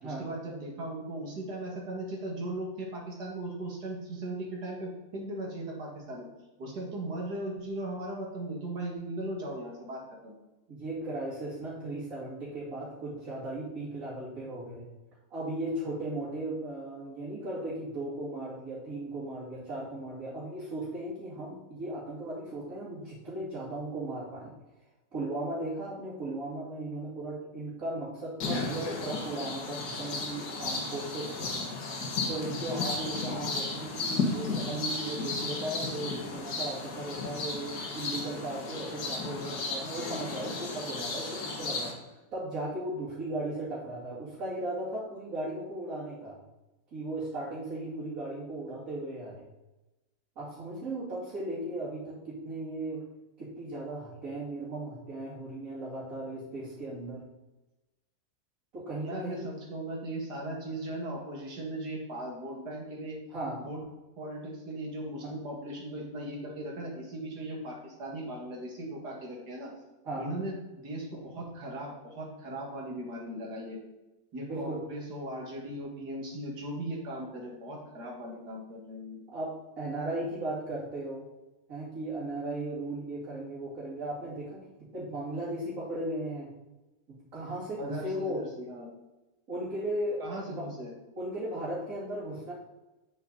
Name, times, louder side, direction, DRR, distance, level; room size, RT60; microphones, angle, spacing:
voice 1, 0.0-6.3 6.6-10.3 33.2-33.4 59.0-63.2 63.6-63.8 64.2-69.7 70.2-73.8 74.3-79.2 87.8-88.9 90.2-90.9, right 1 dB, 85° right, -2 dB, 2.5 m, -38 dB
voice 2, 10.7-14.8 15.3-24.5 25.1-31.6 32.3-46.4 46.9-49.4 50.4-53.0 53.4-57.2 58.7-59.5 63.3-63.6 65.2-65.3 70.0-70.3 74.5-74.8 79.3-81.3 81.7-86.5 87.1-88.5 89.5-90.7 91.2-92.5, right 1 dB, 55° right, -10 dB, 3.0 m, -36 dB
sound 1, 28.4-41.9, left 3 dB, 80° left, 1.9 m, -34 dB
8.2 x 6.8 x 4.0 m, 1.0 s
omnidirectional pair, 1.7 m